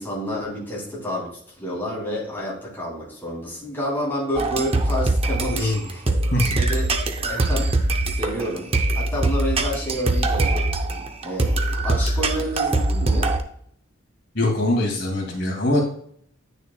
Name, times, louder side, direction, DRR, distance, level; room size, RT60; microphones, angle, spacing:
voice 1, 0.0-6.0 6.4-6.9 7.2-7.9 8.1-8.7 8.9-13.3, equal, 10° left, -5 dB, 3.2 m, -29 dB
sound 1, 4.4-13.4, right 2 dB, 30° right, 0.6 m, -22 dB
voice 2, 5.5-5.9 6.3-6.6 14.3-15.8, left 1 dB, 60° left, 0 dB, 2.4 m, -22 dB
9.4 x 6.6 x 2.3 m, 0.63 s
head